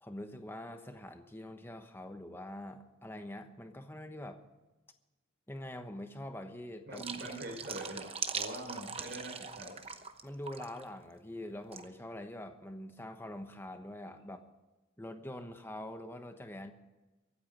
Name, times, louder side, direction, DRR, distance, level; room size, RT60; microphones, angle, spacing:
voice 1, 0.0-4.4 5.5-7.4 10.2-14.4 15.0-16.7, left 1 dB, 10° left, 6 dB, 1.1 m, -44 dB
sound 1, 6.9-10.2 10.5-10.8 11.7-11.9, right 6 dB, 25° right, 0.9 m, -41 dB
voice 2, 6.9-9.8, right 1 dB, 55° right, 0 dB, 4.1 m, -43 dB
23.5 x 8.5 x 5.3 m, 1.1 s
head